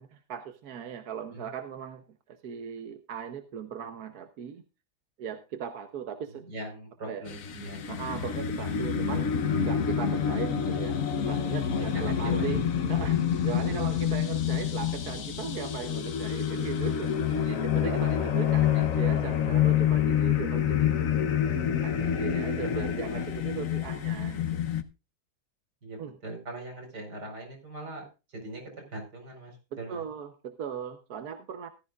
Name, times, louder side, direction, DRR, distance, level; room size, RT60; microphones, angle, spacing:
voice 1, 0.0-4.6 5.2-6.4 7.1-7.2 7.9-10.9 11.3-12.6 12.9-21.0 21.8-24.6 26.0-26.1 29.9-31.7, right 8 dB, 70° right, 7 dB, 1.4 m, -38 dB
voice 2, 6.4-7.8 11.7-12.5 13.6-13.7 17.3-17.6 17.8-18.2 18.7-19.3 21.9-22.4 22.6-23.3 25.8-28.6 28.9-30.1, right 1 dB, 85° right, 2 dB, 5.2 m, -41 dB
sound 1, 7.3-24.8, left 9 dB, 60° left, 1.3 m, -27 dB
15.0 x 13.0 x 2.4 m, 0.30 s
omnidirectional pair, 1.7 m